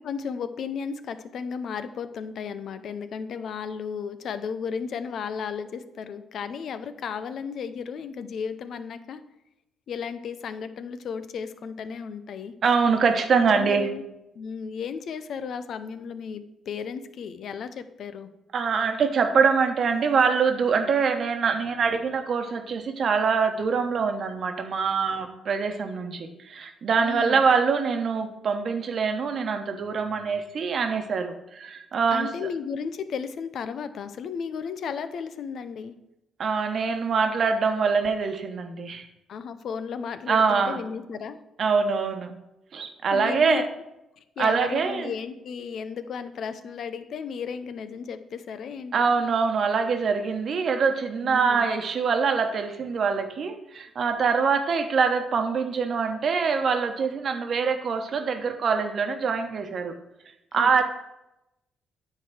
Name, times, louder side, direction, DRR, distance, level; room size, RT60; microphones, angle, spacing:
voice 1, 0.0-9.2 9.9-12.5 13.4-14.0 14.3-18.3 27.0-27.4 32.1-35.9 39.3-41.4 43.1-43.7 44.4-49.1 51.2-51.7 60.5-60.8, left 6 dB, 65° left, 11 dB, 0.7 m, -34 dB
voice 2, 12.6-13.9 18.5-32.3 36.4-39.1 40.3-40.8 41.6-42.3 42.7-43.6 44.4-45.1 48.9-59.9 60.5-60.8, right 5 dB, 55° right, 6 dB, 1.1 m, -24 dB
9.9 x 4.0 x 6.2 m, 0.89 s
cardioid pair, 90°, 0 cm